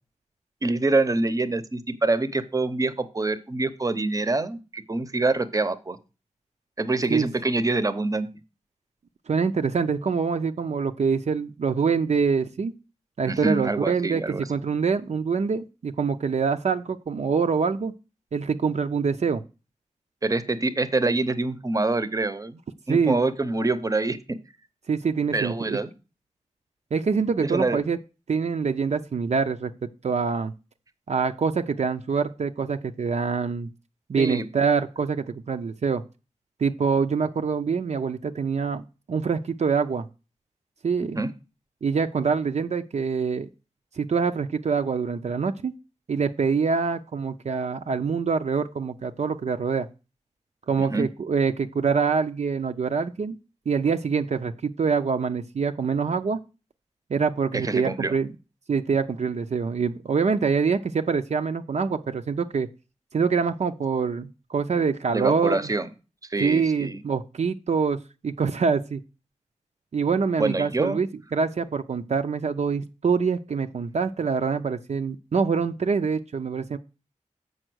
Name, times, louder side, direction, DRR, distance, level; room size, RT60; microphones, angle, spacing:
voice 1, 0.6-6.0 6.8-8.3 13.3-14.4 20.2-22.6 22.9-24.2 25.3-25.9 27.4-27.8 34.2-34.5 41.1-41.3 50.8-51.1 57.5-58.1 65.1-65.9 66.3-67.0 70.4-71.0, right 2 dB, 25° right, 13 dB, 0.8 m, -25 dB
voice 2, 9.3-12.7 13.2-17.9 18.3-19.4 22.9-23.2 24.9-25.8 26.9-28.0 28.3-29.7 30.0-30.5 31.1-33.7 34.1-36.0 36.6-38.8 39.1-40.1 40.8-41.2 41.8-43.5 44.0-45.7 46.1-49.9 50.7-53.4 53.7-56.4 57.1-58.3 58.7-62.7 63.1-65.7 66.4-69.0 69.9-76.8, right 5 dB, 65° right, 6 dB, 0.6 m, -25 dB
7.8 x 5.5 x 6.2 m, 0.31 s
wide cardioid pair, 110°, 13 cm